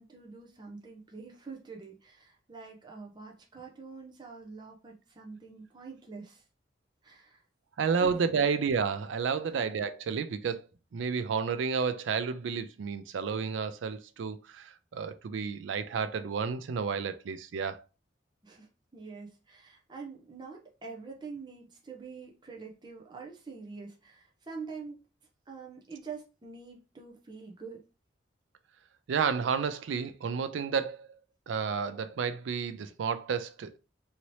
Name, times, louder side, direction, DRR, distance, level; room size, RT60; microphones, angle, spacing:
voice 1, 0.0-6.4 7.0-7.4 8.0-8.4 9.4-9.7 18.4-25.0 25.5-27.8, right 4 dB, 25° right, 0.6 m, -45 dB
voice 2, 7.8-10.6 10.9-17.8 29.1-31.1 31.5-33.7, right 6 dB, 85° right, 0.4 m, -31 dB
2.8 x 2.8 x 3.1 m
head